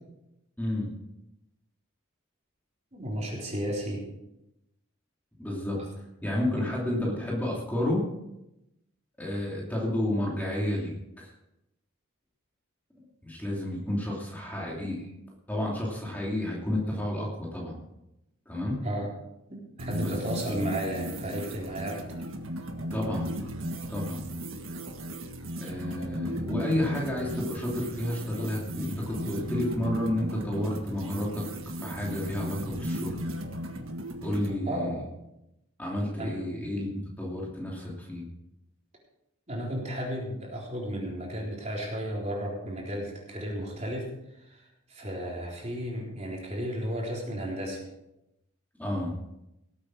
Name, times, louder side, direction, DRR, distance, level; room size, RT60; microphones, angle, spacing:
voice 1, 0.6-0.9 5.4-5.8 6.2-8.0 9.2-11.3 13.2-15.1 15.5-17.8 18.5-18.8 20.0-20.1 20.4-20.6 22.9-23.3 23.9-24.2 25.6-31.4 31.8-33.2 34.2-35.0 35.8-38.2 48.8-49.1, left 1 dB, 10° left, -3 dB, 2.7 m, -31 dB
voice 2, 2.9-4.0 18.8-19.1 19.5-19.6 19.9-22.0 34.6-35.0 36.2-36.6 39.5-44.1 44.4-47.8, equal, 35° right, -2 dB, 3.8 m, -33 dB
sound 1, 19.8-34.6, equal, 90° right, 1.6 m, -36 dB
18.5 x 8.6 x 4.8 m, 0.88 s
head